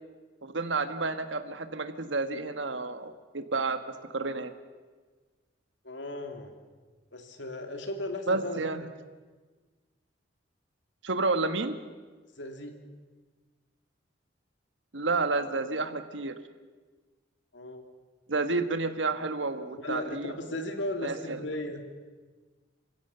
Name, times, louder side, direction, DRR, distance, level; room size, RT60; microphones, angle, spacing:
voice 1, 0.4-3.8 4.1-4.5 8.3-8.9 11.0-11.8 14.9-16.3 18.3-20.6 21.0-21.4, right 3 dB, 80° right, 9 dB, 1.4 m, -30 dB
voice 2, 5.8-6.5 7.1-8.9 12.4-12.7 17.5-17.8 19.8-21.8, left 1 dB, 75° left, 5 dB, 2.7 m, -36 dB
28.0 x 16.0 x 6.9 m, 1.4 s
head